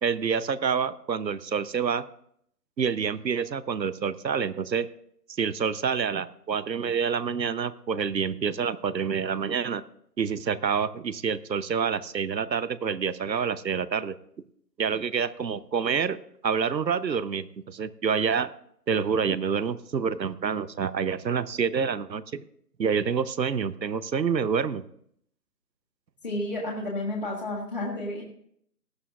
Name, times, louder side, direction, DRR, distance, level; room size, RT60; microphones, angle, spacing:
voice 1, 0.0-2.0 2.8-4.9 5.3-9.8 10.2-14.1 14.8-16.2 16.4-18.5 18.9-22.4 22.8-24.8, right 6 dB, 90° right, 16 dB, 0.9 m, -27 dB
voice 2, 26.2-28.2, left 1 dB, 30° left, -5 dB, 1.6 m, -31 dB
17.5 x 11.5 x 2.4 m, 0.69 s
figure-of-eight pair, 170°, 50 cm